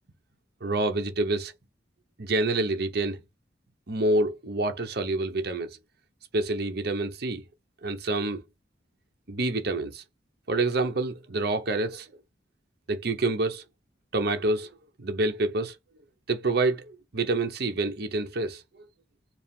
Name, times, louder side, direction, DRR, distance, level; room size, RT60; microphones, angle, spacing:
voice 1, 0.6-1.5 2.2-3.2 3.9-5.8 6.3-7.4 7.8-8.4 9.3-10.0 10.5-12.1 12.9-13.6 14.1-14.7 15.0-15.8 16.3-18.6, right 2 dB, 55° right, 0.8 m, -27 dB
4.7 x 2.0 x 3.6 m
head